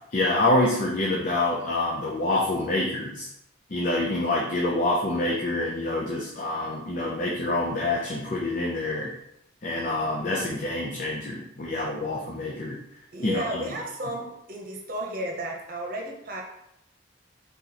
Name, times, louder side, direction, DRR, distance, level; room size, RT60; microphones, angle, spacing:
voice 1, 0.1-3.3 3.7-9.1 9.6-12.8 13.2-13.7, left 2 dB, 40° left, -2 dB, 0.5 m, -26 dB
voice 2, 13.1-16.4, right 1 dB, 45° right, 0 dB, 0.8 m, -33 dB
4.0 x 2.9 x 3.9 m, 0.80 s
head